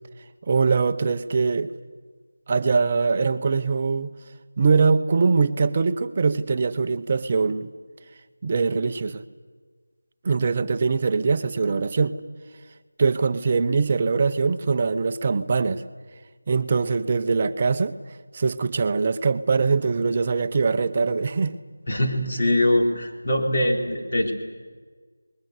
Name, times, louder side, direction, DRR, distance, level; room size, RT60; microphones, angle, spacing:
voice 1, 0.5-1.7 2.5-4.1 4.6-7.7 8.4-9.2 10.2-12.2 13.0-15.8 16.5-18.0 18.3-21.6, right 4 dB, 25° right, 10 dB, 0.8 m, -22 dB
voice 2, 21.9-24.3, left 1 dB, 35° left, 0 dB, 3.9 m, -22 dB
28.5 x 21.0 x 8.1 m, 1.5 s
figure-of-eight pair, 175°, 0 cm